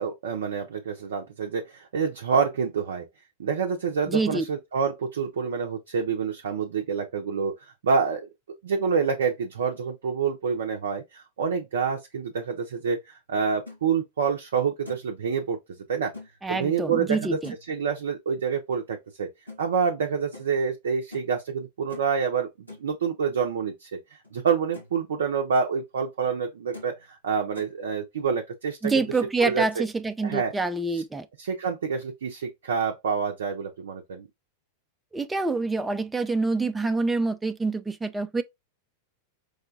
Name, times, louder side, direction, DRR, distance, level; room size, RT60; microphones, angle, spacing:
voice 1, 0.0-3.0 3.4-7.5 7.8-8.3 8.6-15.6 15.9-16.1 16.5-17.4 17.7-19.3 19.6-24.0 24.3-29.1 29.4-29.8 30.2-30.5 30.9-31.0 31.4-34.3, right 6 dB, 65° right, 0.5 m, -27 dB
voice 2, 4.1-4.4 16.4-17.5 28.8-31.3 35.1-38.4, right 3 dB, 10° right, 0.4 m, -26 dB
sound 1, 13.7-13.8 14.3-14.4 14.9-15.2 16.1-16.3 17.4-17.7 19.5-19.6 20.3-20.5 21.1-21.3 21.9-22.2 22.7-22.9 24.2-24.3 24.7-25.0 25.3-25.7 26.3-26.4 26.7-27.0 27.3-27.7 28.9-29.2, left 2 dB, 90° left, 1.2 m, -44 dB
4.7 x 2.2 x 2.6 m
figure-of-eight pair, 90°, 0 cm